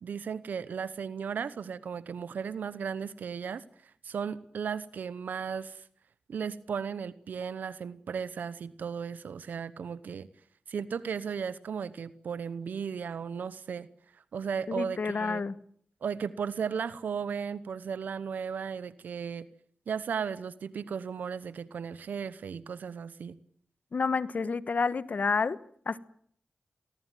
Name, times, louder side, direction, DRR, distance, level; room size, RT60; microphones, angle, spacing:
voice 1, 0.0-5.9 6.3-10.3 10.7-13.9 14.1-15.4 16.0-19.5 19.9-23.4, right 6 dB, 90° right, 0.9 m, -35 dB
voice 2, 14.7-15.5 23.9-25.6 25.8-26.0, left 4 dB, 65° left, 1.3 m, -29 dB
24.5 x 18.5 x 9.2 m
cardioid pair, 40°, 3 cm